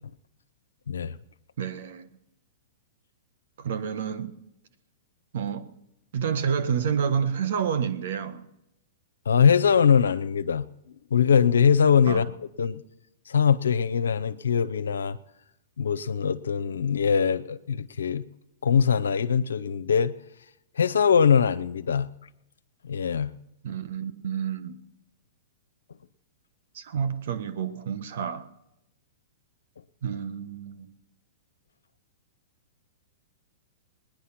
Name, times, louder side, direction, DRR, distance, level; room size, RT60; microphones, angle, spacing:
voice 1, 0.9-1.2 9.3-10.7 11.1-12.3 12.6-12.8 13.3-15.2 15.8-18.2 18.6-20.1 20.8-22.1 22.8-23.3, left 7 dB, 90° left, 0.6 m, -22 dB
voice 2, 1.6-2.1 3.6-4.3 5.3-5.7 6.1-8.4 12.1-12.2 23.6-24.8 26.7-28.5 30.0-30.9, right 7 dB, 65° right, 1.4 m, -29 dB
20.0 x 10.5 x 5.9 m
hypercardioid pair, 130°, 0 cm